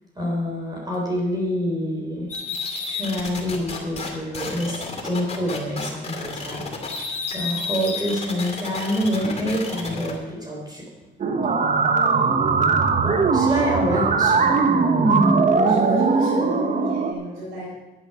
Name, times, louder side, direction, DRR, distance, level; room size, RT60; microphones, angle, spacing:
voice 1, 0.2-2.3 2.8-7.0 7.3-10.8 13.3-14.7 15.0-15.3, equal, 20° right, -2 dB, 3.6 m, -26 dB
sound 1, 2.3-4.1 4.3-10.2, left 4 dB, 30° left, 2.4 m, -31 dB
sound 2, 11.2-17.1, right 4 dB, 40° right, 1.1 m, -20 dB
voice 2, 11.9-12.3 13.0-13.7 15.6-17.7, equal, 90° right, -8 dB, 4.4 m, -32 dB
10.5 x 9.6 x 5.7 m, 1.1 s
cardioid pair, 90°, 20 cm